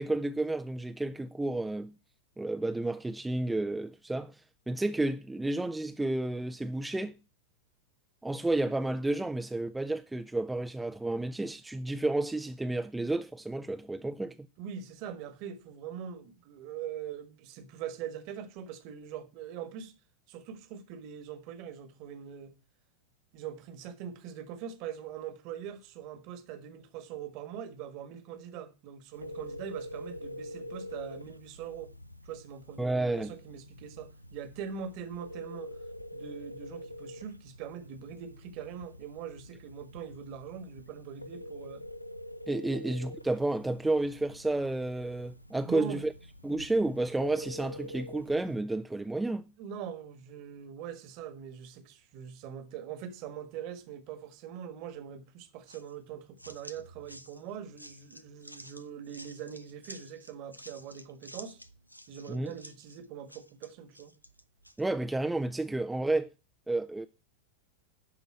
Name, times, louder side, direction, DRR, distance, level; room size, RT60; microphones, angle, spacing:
voice 1, 0.0-1.9 2.4-4.4 4.7-7.1 8.2-14.4 32.8-33.3 42.5-46.1 46.4-49.4 62.3-62.5 64.8-66.3 66.7-67.1, right 2 dB, 5° right, 0.4 m, -31 dB
voice 2, 14.6-19.9 20.3-22.6 23.3-31.9 32.2-35.7 36.1-41.8 42.7-42.8 45.6-46.0 49.6-61.6 62.1-64.1, right 8 dB, 45° right, 1.4 m, -42 dB
Telephone, 29.1-48.5, left 1 dB, 90° right, 0.4 m, -46 dB
sound 1, 55.7-64.8, equal, 90° left, 0.5 m, -51 dB
11.5 x 3.9 x 7.5 m
figure-of-eight pair, 90°, 0 cm